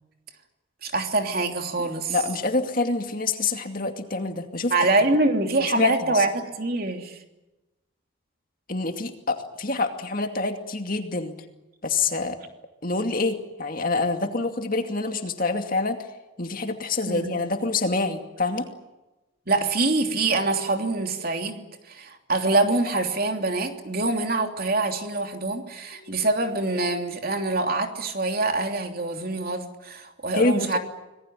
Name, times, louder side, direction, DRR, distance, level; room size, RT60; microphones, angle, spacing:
voice 1, 0.8-2.2 4.7-7.2 17.1-17.4 19.5-30.8, right 2 dB, 45° right, 4 dB, 3.1 m, -25 dB
voice 2, 2.1-4.7 5.8-6.2 8.7-11.3 11.8-12.4 12.8-16.1 16.4-18.7 25.9-26.1 30.3-30.8, left 3 dB, 45° left, 5 dB, 2.5 m, -26 dB
26.5 x 19.5 x 9.2 m, 1.0 s
head